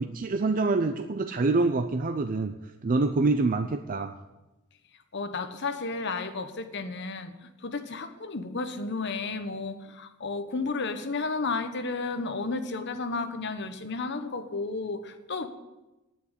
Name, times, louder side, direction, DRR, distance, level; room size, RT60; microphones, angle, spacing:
voice 1, 0.0-2.5 2.8-4.2, right 3 dB, 40° right, 8 dB, 0.5 m, -26 dB
voice 2, 5.1-15.5, left 3 dB, 55° left, 8 dB, 1.1 m, -32 dB
9.5 x 8.4 x 8.2 m, 1.0 s
head